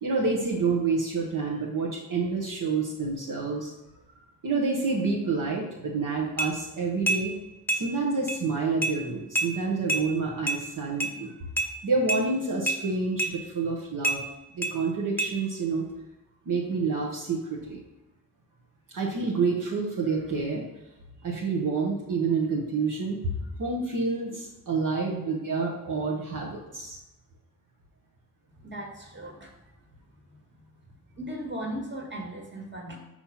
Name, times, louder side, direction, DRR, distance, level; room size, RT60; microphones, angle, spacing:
voice 1, 0.0-3.7 4.4-7.3 7.7-11.3 11.8-14.2 14.5-15.9 16.5-17.8 18.9-20.6 21.2-27.0, right 4 dB, 65° right, -2 dB, 1.1 m, -28 dB
sound 1, 6.4-6.5 7.1-7.2 7.7-7.8 8.3-8.4 8.8-8.9 9.3-9.5 9.9-10.0 10.5-10.6 11.0-11.1 11.6-11.7 12.1-12.2 12.7-12.8 13.2-13.3 14.0-14.2 14.6-14.7 15.2-15.3, right 2 dB, 5° left, 0.8 m, -26 dB
voice 2, 28.6-29.6 30.3-30.6 31.1-33.0, right 1 dB, 30° right, 1 dB, 1.7 m, -37 dB
4.5 x 4.3 x 5.7 m, 1.0 s
cardioid pair, 70°, 35 cm